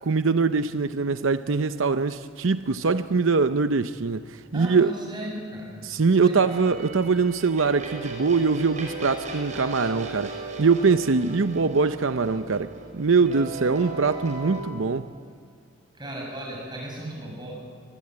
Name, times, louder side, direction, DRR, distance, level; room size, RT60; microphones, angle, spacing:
voice 1, 0.0-4.9 5.8-10.3 10.6-15.1, right 4 dB, 80° right, 10 dB, 0.7 m, -23 dB
voice 2, 4.5-5.8 6.2-6.7 15.9-17.6, right 1 dB, 20° right, -2 dB, 7.9 m, -36 dB
sound 1, 6.5-14.6, right 2 dB, 35° right, 5.4 m, -37 dB
24.5 x 21.5 x 9.7 m, 2.1 s
head